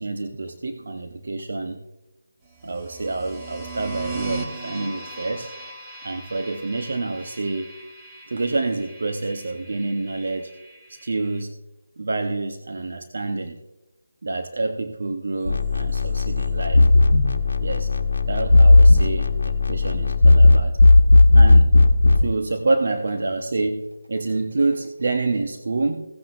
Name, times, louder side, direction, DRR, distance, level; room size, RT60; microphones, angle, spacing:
voice 1, 0.0-1.8 2.6-5.5 6.0-7.8 8.3-10.5 11.0-11.5 12.0-13.6 14.2-16.9 17.6-17.9 18.3-19.4 19.7-20.8 21.3-21.7 22.2-26.1, right 3 dB, 60° right, 6 dB, 0.8 m, -27 dB
sound 1, 2.6-11.4, right 3 dB, 15° right, 1.2 m, -38 dB
sound 2, 15.5-22.3, left 2 dB, 75° left, 1.1 m, -15 dB
17.0 x 9.2 x 2.5 m, 0.98 s
figure-of-eight pair, 160°, 0 cm